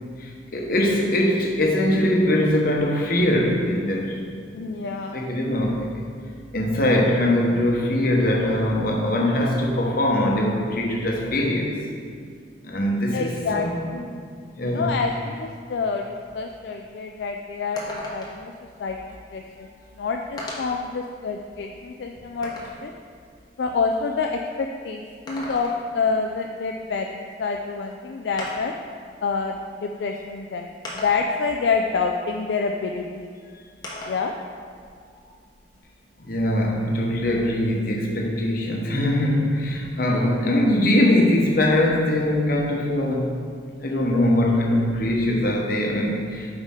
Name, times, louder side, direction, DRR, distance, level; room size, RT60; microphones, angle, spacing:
voice 1, 0.2-4.2 4.8-6.0 6.5-11.8 12.6-13.7 14.6-14.9 36.2-43.3 43.8-46.5, left 1 dB, 50° left, -1 dB, 1.0 m, -22 dB
voice 2, 4.5-5.3 11.2-11.4 13.1-13.7 14.6-16.1 16.3-18.5 18.8-19.0 19.3-19.7 19.9-22.9 23.6-28.7 29.2-30.7 30.9-33.3 34.0-34.3, left 4 dB, 70° left, 2 dB, 0.3 m, -27 dB
sound 1, 17.8-18.5 19.6-19.7 20.4-20.8 21.4-22.8 25.1-26.0 27.5-27.6 28.4-28.8 29.8-29.9 30.8-31.5 33.8-34.3 34.7-35.8, left 1 dB, 20° left, 1.0 m, -37 dB
8.2 x 4.9 x 3.7 m, 2.1 s
head